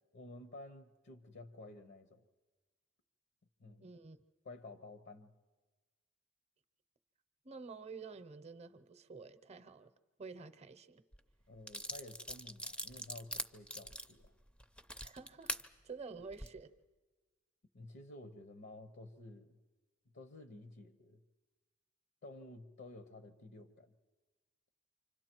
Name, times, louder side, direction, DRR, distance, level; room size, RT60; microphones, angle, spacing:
voice 1, 0.1-2.2 3.6-3.9 4.4-5.3 11.5-14.3 17.7-19.6 20.1-21.2 22.2-23.9, left 2 dB, 60° left, 0.9 m, -52 dB
voice 2, 3.8-4.2 7.4-9.9 10.2-11.0 15.0-15.5 15.8-16.7, right 4 dB, 30° right, 0.8 m, -49 dB
sound 1, 11.1-11.2 11.7-15.6 16.2-16.5, equal, 5° left, 0.6 m, -42 dB
29.0 x 25.5 x 4.5 m
head